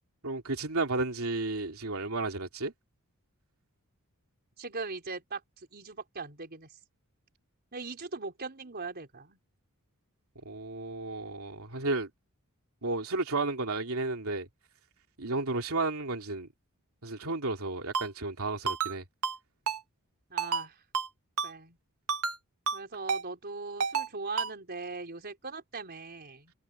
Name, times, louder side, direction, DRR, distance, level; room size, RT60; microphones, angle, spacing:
voice 1, 0.2-2.7 10.4-12.1 12.8-14.5 15.2-16.5 17.0-19.0, right 2 dB, 70° right, 3.1 m, -32 dB
voice 2, 4.6-6.7 7.7-9.4 20.3-20.8 21.4-21.8 22.7-26.5, right 4 dB, 45° right, 4.6 m, -40 dB
Ringtone, 17.9-18.1 18.7-18.9 19.2-19.4 19.7-19.8 20.4-20.6 20.9-21.1 21.4-21.5 22.1-22.4 22.7-22.8 23.1-23.2 23.8-24.1 24.4-24.5, right 5 dB, 85° right, 1.4 m, -30 dB
head